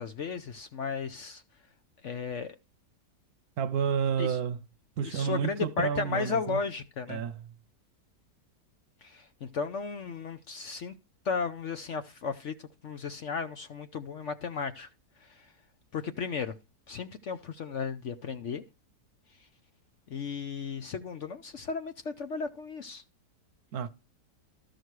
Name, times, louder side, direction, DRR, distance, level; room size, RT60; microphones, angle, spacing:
voice 1, 0.0-1.4 2.0-2.6 4.2-4.4 5.0-7.2 9.0-10.9 11.2-14.9 15.2-15.5 15.9-16.5 16.9-18.6 20.1-23.0, left 5 dB, 55° left, 0.9 m, -35 dB
voice 2, 3.6-4.6 5.0-6.6 7.1-7.3 23.7-23.9, right 7 dB, 70° right, 1.2 m, -30 dB
13.0 x 6.5 x 4.7 m
omnidirectional pair, 1.8 m